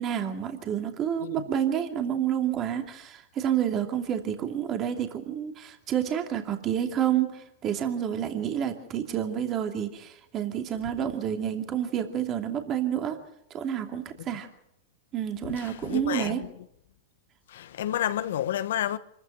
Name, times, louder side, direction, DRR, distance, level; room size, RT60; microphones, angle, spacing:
voice 1, 0.0-13.2 13.5-14.5 15.1-16.4, right 9 dB, 35° right, 2.7 m, -29 dB
voice 2, 15.4-16.5 17.5-19.0, left 11 dB, 75° left, 1.1 m, -30 dB
25.5 x 14.0 x 7.8 m
hypercardioid pair, 125°, 0 cm